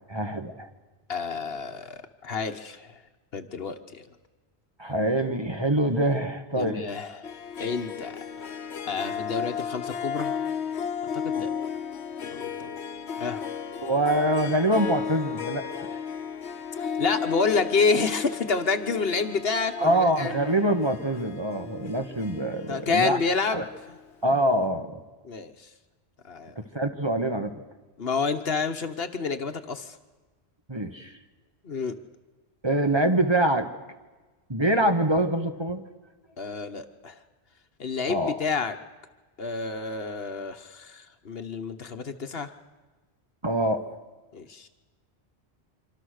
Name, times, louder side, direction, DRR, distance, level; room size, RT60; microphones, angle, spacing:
voice 1, 0.1-0.7 4.8-7.0 13.8-15.9 19.8-23.2 23.5-23.6 24.2-25.0 26.7-27.5 30.7-31.1 32.6-33.7 34.5-35.8 36.5-36.6 38.1-38.4 43.4-43.8, right 1 dB, 25° right, 6 dB, 1.5 m, -25 dB
voice 2, 1.1-3.0 3.3-4.0 6.6-7.3 7.6-8.1 8.8-10.4 11.1-11.5 12.3-12.7 13.2-13.4 16.8-20.3 22.7-24.0 25.2-25.7 26.2-26.5 28.0-30.0 31.6-31.9 36.4-37.1 37.8-38.8 39.4-42.5 44.3-44.7, left 4 dB, 65° left, 8 dB, 1.4 m, -29 dB
Harp, 7.2-24.0, left 7 dB, 85° left, 1.2 m, -34 dB
26.0 x 25.5 x 6.6 m, 1.3 s
omnidirectional pair, 1.1 m